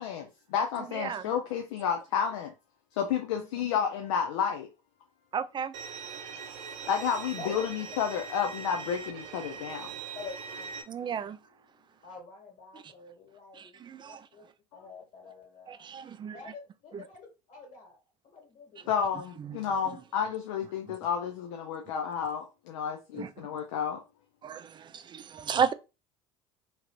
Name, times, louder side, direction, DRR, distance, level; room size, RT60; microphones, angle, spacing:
voice 1, 0.0-2.5 3.0-4.7 6.9-9.9 11.0-11.1 18.9-24.0, left 7 dB, 75° left, 0.6 m, -31 dB
voice 2, 0.9-1.3 5.3-5.7 10.9-11.4 12.7-12.9 13.5-14.2 15.7-16.4 16.9-17.0 19.4-19.6 20.9-21.0 23.2-23.3 24.4-25.7, right 7 dB, 30° right, 0.4 m, -33 dB
Bowed string instrument, 5.7-10.8, right 5 dB, 75° right, 0.6 m, -41 dB
voice 3, 7.3-7.7 10.1-11.2 12.0-14.4 14.7-15.9 16.3-18.0 18.2-19.2, left 4 dB, 50° left, 1.8 m, -47 dB
3.0 x 2.5 x 3.1 m
hypercardioid pair, 70°, 16 cm